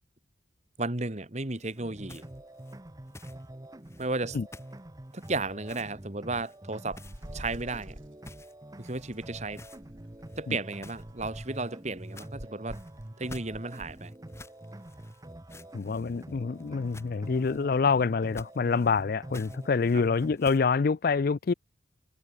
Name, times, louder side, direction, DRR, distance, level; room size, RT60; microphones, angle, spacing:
voice 1, 0.8-2.2 4.0-4.4 5.1-7.0 7.3-8.0 8.8-9.6 10.4-12.8 13.2-14.1 19.9-20.0, right 3 dB, 35° right, 1.6 m, -34 dB
sound 1, 1.5-3.5 3.8-4.2 4.5-4.8 5.1-6.0 6.4-6.6 6.9-7.9 8.2-9.2 9.5-9.8 10.2-20.7, left 2 dB, 15° left, 1.6 m, -52 dB
sound 2, 1.8-20.4, right 1 dB, 20° right, 0.8 m, -46 dB
sound 3, 6.9-8.1 9.1-10.3 11.0-11.7 12.4-14.0, equal, 85° right, 4.8 m, -47 dB
voice 2, 15.7-21.5, left 5 dB, 50° left, 0.4 m, -26 dB
head